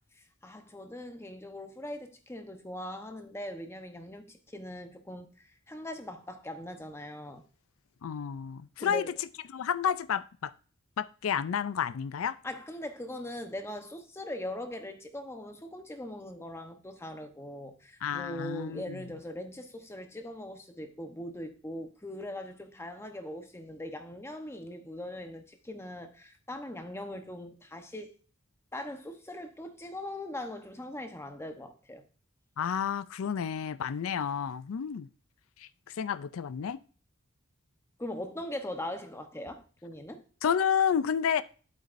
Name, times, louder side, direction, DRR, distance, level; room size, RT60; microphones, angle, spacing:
voice 1, 0.4-7.5 8.8-9.2 12.4-28.2 28.7-32.0 38.0-40.3, left 1 dB, 15° left, 0.9 m, -41 dB
voice 2, 8.0-9.1 9.5-10.5 11.0-12.4 18.0-19.0 32.6-35.1 36.0-36.8 40.4-41.4, left 8 dB, 75° left, 0.4 m, -30 dB
8.2 x 8.1 x 2.6 m
head